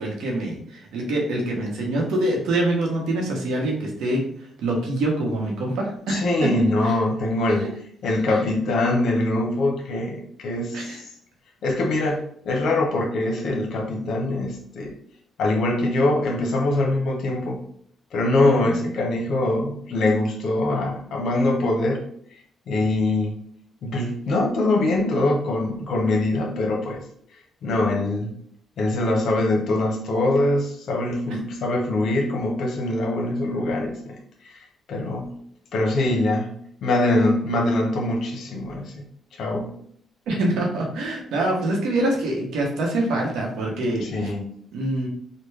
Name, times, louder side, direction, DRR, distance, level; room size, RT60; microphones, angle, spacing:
voice 1, 0.0-4.2 4.6-6.5 8.3-8.4 10.7-11.0 18.6-18.9 40.3-44.3 44.7-45.1, right 1 dB, 80° right, 0 dB, 0.9 m, -25 dB
voice 2, 6.1-11.0 11.6-14.9 15.4-17.6 18.1-22.0 22.7-23.4 23.8-27.0 27.6-28.3 28.8-34.2 34.4-35.3 35.7-36.5 36.8-38.9 39.3-39.7 44.0-44.5, left 2 dB, 70° left, 0 dB, 0.9 m, -23 dB
3.3 x 2.2 x 3.3 m, 0.64 s
cardioid pair, 90°, 0 cm